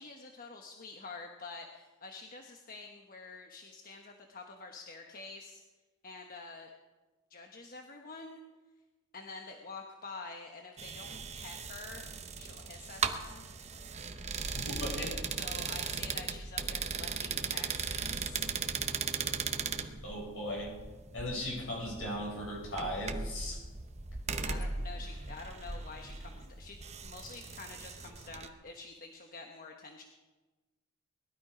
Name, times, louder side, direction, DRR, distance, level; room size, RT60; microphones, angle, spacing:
voice 1, 0.0-5.6 6.0-6.7 7.3-8.4 9.1-12.0 12.4-13.5 15.4-18.4 24.4-30.0, left 3 dB, 45° left, 3 dB, 1.1 m, -48 dB
sound 1, 10.8-28.5, right 5 dB, 30° right, 0.9 m, -38 dB
voice 2, 14.5-15.2 20.0-20.7 21.1-23.6, equal, 65° left, -1 dB, 6.2 m, -37 dB
20.5 x 13.0 x 5.0 m, 1.2 s
head